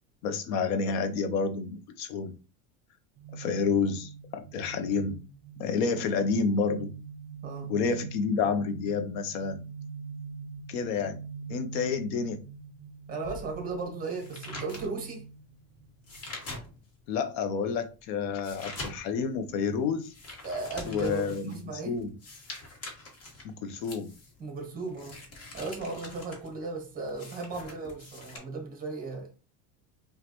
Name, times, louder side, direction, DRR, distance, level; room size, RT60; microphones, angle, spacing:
voice 1, 0.2-2.3 3.3-5.2 5.6-6.9 7.7-9.6 10.7-11.2 11.5-12.4 17.1-20.1 20.9-22.1 23.4-24.1, left 5 dB, 75° left, 0.8 m, -29 dB
sound 1, 3.2-16.2, right 5 dB, 40° right, 0.4 m, -43 dB
voice 2, 7.4-7.7 13.1-15.2 20.4-22.0 24.4-25.2 25.5-29.3, right 3 dB, 20° right, 1.1 m, -36 dB
sound 2, 13.2-17.1 17.5-28.4, left 2 dB, 40° left, 1.3 m, -44 dB
5.1 x 2.4 x 2.9 m
cardioid pair, 155°, 41 cm